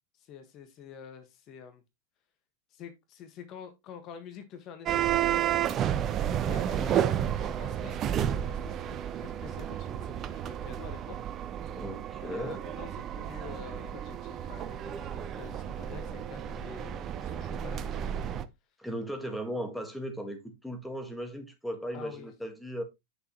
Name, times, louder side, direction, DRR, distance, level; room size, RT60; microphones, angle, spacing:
voice 1, 0.2-1.8 2.7-5.6 6.4-11.2 12.2-18.0 21.9-22.3, left 7 dB, 40° left, 1.5 m, -47 dB
sound 1, 4.9-18.4, right 10 dB, 30° right, 0.6 m, -32 dB
voice 2, 6.7-7.2 11.8-12.6 18.8-22.8, equal, ahead, 1.7 m, -37 dB
8.6 x 6.5 x 3.0 m
figure-of-eight pair, 90°, 0 cm